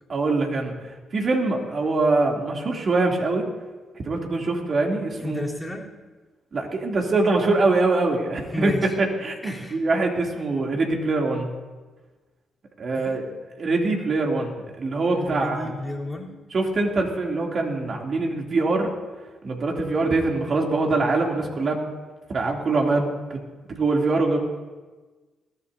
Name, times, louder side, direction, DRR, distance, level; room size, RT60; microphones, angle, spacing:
voice 1, 0.1-3.4 4.0-5.4 6.5-8.7 9.0-11.5 12.8-13.3 13.6-15.7 16.5-18.9 19.4-21.9 22.3-24.4, right 3 dB, 50° right, 0 dB, 2.8 m, -23 dB
voice 2, 5.2-5.9 8.5-8.9 9.4-9.8 13.0-13.2 15.1-16.3, left 2 dB, 10° left, -3 dB, 3.6 m, -32 dB
21.0 x 14.5 x 2.7 m, 1.3 s
supercardioid pair, 55°, 0 cm